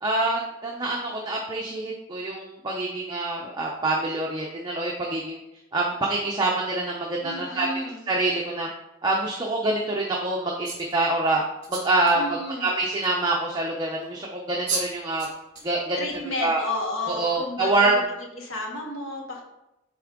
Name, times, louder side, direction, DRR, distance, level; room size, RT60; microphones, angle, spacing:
voice 1, 0.0-5.4 5.7-7.7 8.1-8.7 9.0-11.4 11.7-15.3 15.6-16.6 17.1-18.0, right 2 dB, 20° right, -2 dB, 0.6 m, -26 dB
voice 2, 7.2-8.0 12.1-12.7 16.0-18.0 18.4-19.4, left 2 dB, 70° left, 0 dB, 1.3 m, -32 dB
sound 1, 10.6-11.0 11.6-12.1 13.0-13.1 14.3-14.4 14.7-14.9 15.2-15.7 16.1-16.4, right 4 dB, 35° right, 1.7 m, -31 dB
8.1 x 3.5 x 3.7 m, 0.90 s
head